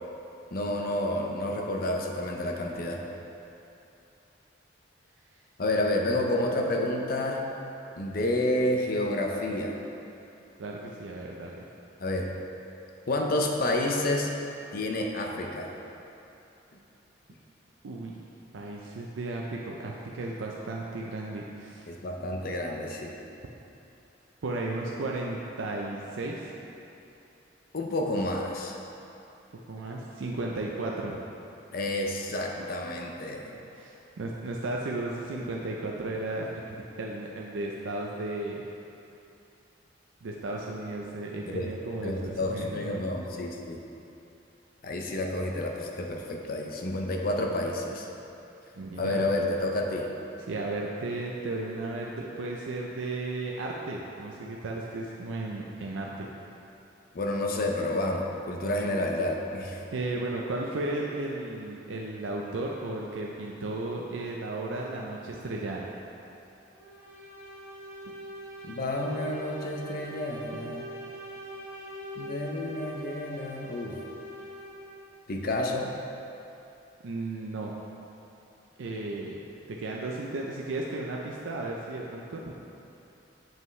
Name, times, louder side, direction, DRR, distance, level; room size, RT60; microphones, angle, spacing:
voice 1, 0.5-3.0 5.6-7.5 8.0-9.8 12.0-12.3 13.1-14.3 14.7-15.7 21.9-23.1 27.7-28.7 31.7-33.5 41.5-41.7 42.0-43.8 44.8-48.1 49.0-50.1 57.1-59.8 68.6-70.9 72.2-74.0 75.3-75.9, left 1 dB, 50° left, 1 dB, 0.5 m, -29 dB
voice 2, 10.6-11.6 17.8-18.2 18.5-21.9 24.4-26.5 29.7-31.2 32.6-32.7 33.7-38.6 40.2-43.0 48.7-49.2 50.5-56.3 59.9-65.8 77.0-77.7 78.8-79.4 79.7-82.6, right 2 dB, 80° right, -2 dB, 0.5 m, -34 dB
sound 1, 66.7-75.1, right 1 dB, 15° right, 0.9 m, -42 dB
7.4 x 5.3 x 3.2 m, 2.8 s
head